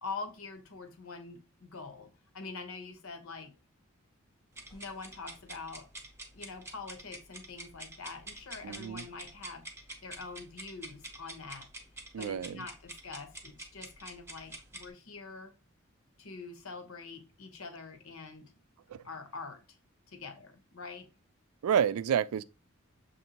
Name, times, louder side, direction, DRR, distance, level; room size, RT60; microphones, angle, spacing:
voice 1, 0.0-3.5 4.7-5.9 6.3-9.7 10.0-11.7 12.2-15.5 16.2-18.5 19.0-19.6 20.1-21.1, left 4 dB, 80° left, 0.9 m, -44 dB
sound 1, 4.5-14.9, right 2 dB, 10° right, 0.8 m, -47 dB
voice 2, 8.6-9.0 12.1-12.6 18.9-19.0 21.6-22.4, right 8 dB, 90° right, 0.3 m, -29 dB
6.6 x 2.6 x 2.8 m
head